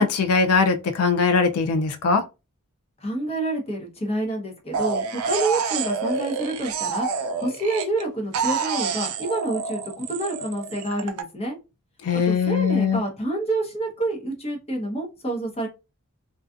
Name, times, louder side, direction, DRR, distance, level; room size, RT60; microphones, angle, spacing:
voice 1, 0.0-2.2 12.0-13.0, left 5 dB, 90° left, 0.4 m, -21 dB
voice 2, 3.0-7.1 7.4-11.6 12.1-15.7, right 2 dB, 30° left, 0.8 m, -28 dB
sound 1, 4.7-8.0 8.3-11.2, right 5 dB, 80° right, 0.4 m, -28 dB
2.5 x 2.3 x 2.4 m
head